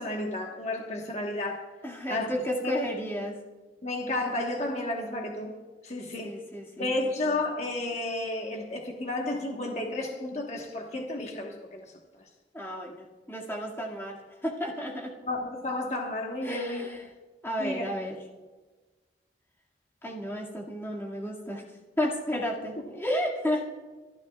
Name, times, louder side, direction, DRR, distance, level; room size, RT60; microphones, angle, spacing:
voice 1, 0.0-1.6 2.1-2.3 2.6-2.7 3.8-5.5 5.8-6.3 6.8-11.9 15.2-16.8 17.6-17.8, left 2 dB, 35° left, 0 dB, 1.3 m, -32 dB
voice 2, 1.8-3.4 6.2-6.9 7.3-7.4 12.5-15.1 16.4-17.0 17.4-18.2 20.0-21.6 22.0-23.7, equal, 15° left, -3 dB, 2.1 m, -32 dB
27.5 x 13.0 x 2.4 m, 1.3 s
head